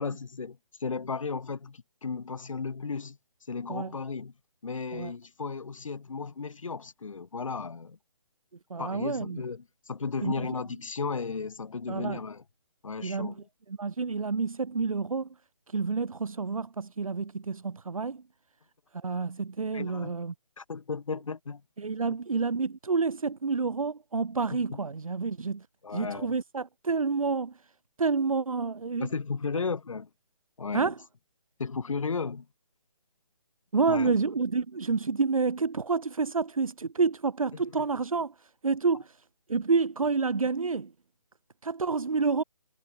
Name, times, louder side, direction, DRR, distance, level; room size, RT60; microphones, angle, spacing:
voice 1, 0.0-3.2 3.5-4.3 4.6-8.0 8.8-12.4 12.8-13.4 19.7-20.1 20.6-21.6 24.5-24.8 25.8-26.3 29.0-30.1 30.6-30.9 31.6-32.5 33.9-34.2 37.8-37.9, left 5 dB, 70° left, 6.8 m, -35 dB
voice 2, 8.7-9.4 10.2-10.3 11.9-12.2 13.0-13.3 13.8-15.3 15.7-18.2 19.0-20.3 21.8-25.7 25.9-27.5 28.0-29.1 30.7-30.9 33.7-38.3 38.6-39.2 39.5-40.9 41.6-42.4, right 4 dB, 80° right, 2.1 m, -28 dB
hypercardioid pair, 160°, 17 cm